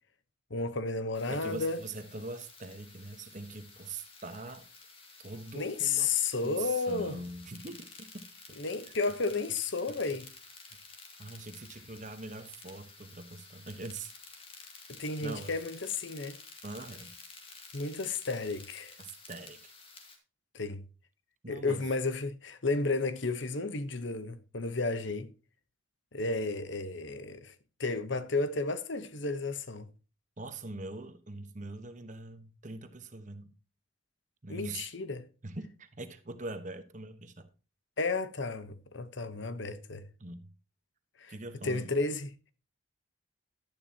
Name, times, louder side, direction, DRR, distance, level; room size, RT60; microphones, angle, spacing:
voice 1, 0.5-1.8 5.5-7.1 8.6-10.3 14.9-16.4 17.7-19.0 20.5-20.8 21.5-25.3 26.1-27.5 27.8-29.9 34.5-35.2 38.0-40.0 41.2-41.3 41.6-42.3, left 3 dB, 65° left, 1.0 m, -32 dB
sound 1, 1.1-20.2, left 4 dB, 25° left, 2.1 m, -52 dB
voice 2, 1.3-4.7 5.2-6.2 6.4-8.2 10.7-10.8 11.2-14.1 15.2-15.5 16.6-17.1 19.0-19.7 21.4-21.8 30.4-33.5 34.4-34.9 35.4-37.5 40.2-40.5 41.3-41.9, right 2 dB, 40° right, 1.2 m, -43 dB
12.0 x 10.5 x 2.9 m
head